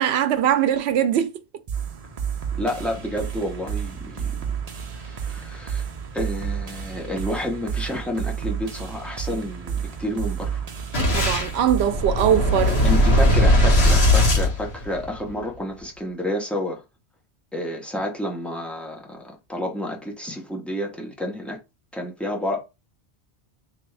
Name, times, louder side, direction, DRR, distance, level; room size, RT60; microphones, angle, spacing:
voice 1, 0.0-1.3 11.0-12.8, right 9 dB, 80° right, 0.8 m, -21 dB
sound 1, 1.7-13.7, right 7 dB, 40° right, 0.7 m, -31 dB
voice 2, 2.5-4.6 4.9-10.6 12.8-16.8 17.5-21.6 21.9-22.6, left 1 dB, ahead, 0.9 m, -30 dB
Boom, 10.9-15.3, left 1 dB, 75° left, 1.5 m, -19 dB
3.4 x 3.0 x 3.3 m
omnidirectional pair, 1.1 m